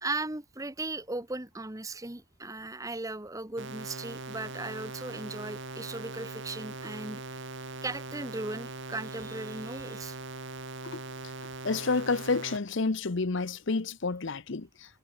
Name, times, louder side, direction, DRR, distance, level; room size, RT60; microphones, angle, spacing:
voice 1, 0.0-7.2 7.8-10.2, right 2 dB, 15° right, 1.1 m, -37 dB
sound 1, 3.6-12.6, right 3 dB, 60° right, 2.6 m, -41 dB
voice 2, 11.6-14.7, left 3 dB, 60° left, 0.8 m, -29 dB
head